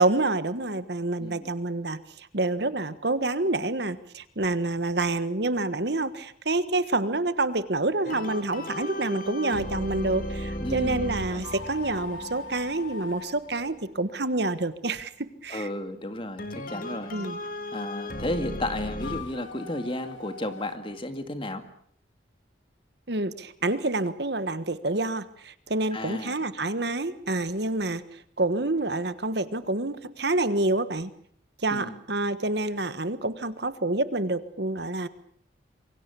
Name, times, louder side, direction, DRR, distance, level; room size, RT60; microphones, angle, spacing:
voice 1, 0.0-15.7 17.1-17.4 23.1-31.1 31.6-35.1, right 2 dB, 55° right, 13 dB, 1.4 m, -28 dB
voice 2, 1.2-1.5 10.6-11.4 15.5-17.1 17.7-21.6 25.9-26.4 31.7-32.0, left 1 dB, 25° left, 8 dB, 2.1 m, -33 dB
sound 1, 8.0-13.8 16.4-19.2, equal, 45° left, 2.7 m, -36 dB
sound 2, 11.3-14.6 18.9-21.1, left 3 dB, 85° left, 2.9 m, -41 dB
27.0 x 23.5 x 7.0 m, 0.63 s
head